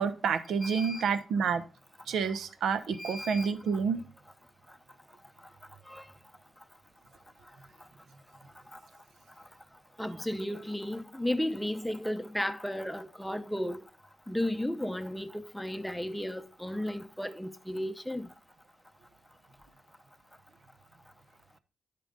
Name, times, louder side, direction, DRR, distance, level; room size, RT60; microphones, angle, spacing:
voice 1, 0.0-1.6 2.1-4.0, right 6 dB, 80° right, 0.9 m, -29 dB
voice 2, 0.6-1.1 3.0-3.5 5.9-6.0 10.0-13.8 14.3-18.3, left 1 dB, 5° left, 0.8 m, -34 dB
10.5 x 5.8 x 3.8 m
cardioid pair, 85°, 0 cm